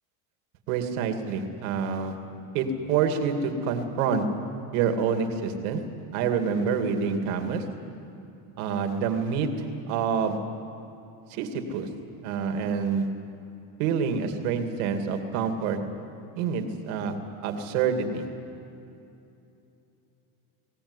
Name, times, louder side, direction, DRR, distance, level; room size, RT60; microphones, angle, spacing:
voice 1, 0.7-2.1 2.5-4.2 4.7-5.8 6.1-7.6 8.6-10.4 11.3-11.9 12.2-13.1 13.8-15.8 16.4-17.1 17.4-18.3, right 6 dB, 80° right, 6 dB, 2.5 m, -27 dB
22.5 x 16.5 x 9.8 m, 2.8 s
supercardioid pair, 105°, 44 cm